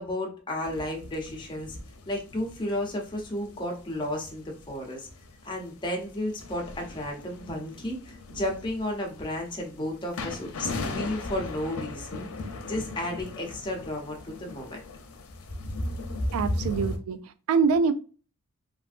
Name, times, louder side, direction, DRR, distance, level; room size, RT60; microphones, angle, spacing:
voice 1, 0.0-1.8 2.1-5.1 5.4-12.3 12.6-14.8 16.2-16.3, left 1 dB, 20° left, 1 dB, 0.7 m, -33 dB
sound 1, 0.6-17.0, left 3 dB, 90° left, 0.6 m, -40 dB
voice 2, 16.3-17.9, right 5 dB, 75° right, 11 dB, 0.3 m, -25 dB
3.3 x 2.5 x 2.4 m, 0.37 s
head